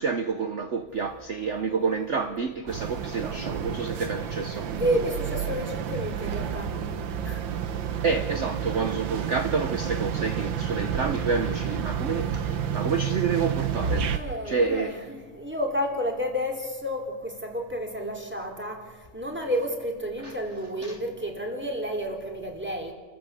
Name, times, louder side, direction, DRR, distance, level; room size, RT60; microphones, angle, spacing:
voice 1, 0.0-4.7 8.0-14.2 14.4-15.0 20.2-20.3 20.8-21.0, right 5 dB, 50° right, 1.0 m, -29 dB
sound 1, 2.7-14.2, right 8 dB, 85° right, 1.9 m, -30 dB
voice 2, 4.8-6.7 7.2-7.5 14.1-22.9, equal, 5° right, 3.4 m, -31 dB
29.5 x 14.5 x 7.0 m
omnidirectional pair, 2.0 m